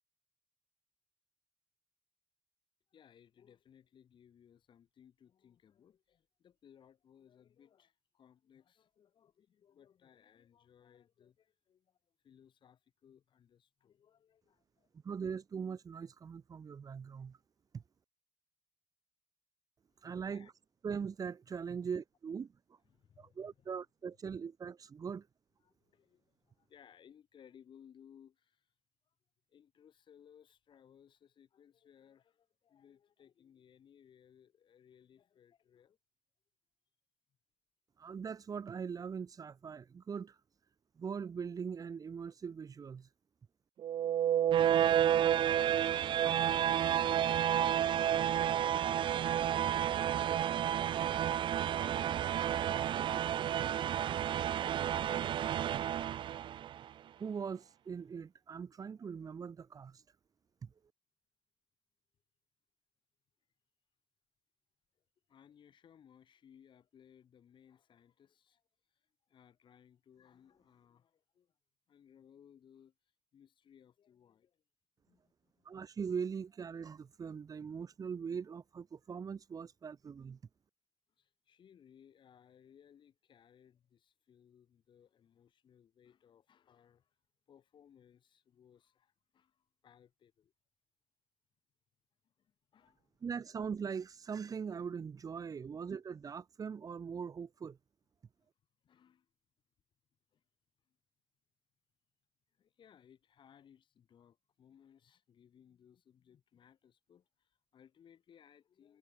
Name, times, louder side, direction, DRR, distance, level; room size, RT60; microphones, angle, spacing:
voice 1, 2.9-14.9 20.2-20.5 22.9-23.5 25.6-28.7 29.5-36.0 45.5-54.3 65.3-68.6 68.9-71.5 71.9-72.9 73.3-74.6 75.0-75.7 81.2-87.1 87.5-90.5 92.2-93.2 95.7-95.8 98.8-99.3 100.3-100.4 102.6-109.0, left 8 dB, 55° left, 6.5 m, -63 dB
voice 2, 15.0-17.4 17.7-17.8 20.0-20.5 20.8-22.8 23.2-25.3 38.0-40.4 41.0-43.1 57.2-60.1 60.6-60.7 75.6-80.4 93.2-97.8, right 6 dB, 35° right, 2.1 m, -41 dB
sound 1, 43.8-56.8, right 10 dB, 55° right, 0.5 m, -31 dB
cardioid pair, 145°, 10 cm